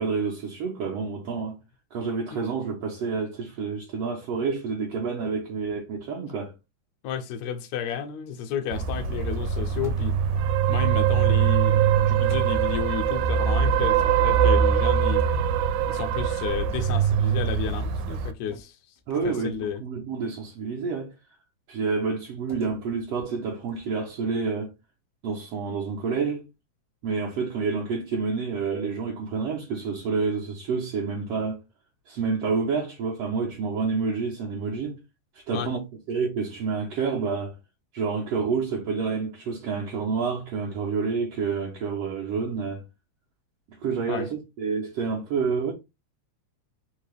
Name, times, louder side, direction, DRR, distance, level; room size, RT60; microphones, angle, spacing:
voice 1, 0.0-1.6 1.9-6.5 19.1-21.1 21.7-24.7 25.2-26.5 27.0-31.6 32.1-35.0 35.3-35.8 36.1-37.5 37.9-42.8 43.7-45.7, right 5 dB, 70° right, 1.5 m, -28 dB
voice 2, 7.0-10.2 10.7-15.2 15.9-18.8 19.2-19.8 35.5-35.7 44.1-44.3, left 8 dB, 75° left, 1.8 m, -32 dB
sound 1, 8.7-18.3, right 8 dB, 90° right, 2.1 m, -22 dB
sound 2, 9.8-10.5 12.2-13.6 15.1-16.4 16.9-17.1 18.4-20.0 22.5-24.1, equal, 20° right, 0.4 m, -48 dB
4.7 x 2.9 x 3.2 m
omnidirectional pair, 3.4 m